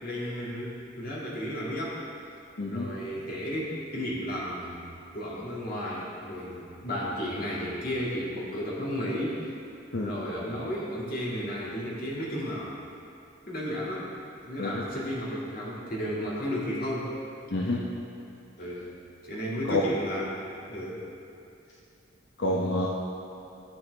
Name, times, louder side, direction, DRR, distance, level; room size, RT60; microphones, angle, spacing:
voice 1, 0.0-2.0 2.7-4.8 5.1-9.4 10.0-12.7 13.5-14.1 14.5-17.1 18.6-18.9 19.2-20.4 20.7-21.0, equal, 50° left, -6 dB, 2.2 m, -33 dB
voice 2, 2.6-2.9 9.9-10.1 14.6-14.8 17.5-17.8 19.6-19.8 22.4-22.9, left 2 dB, 65° left, -3 dB, 0.8 m, -28 dB
14.0 x 7.7 x 3.4 m, 2.8 s
head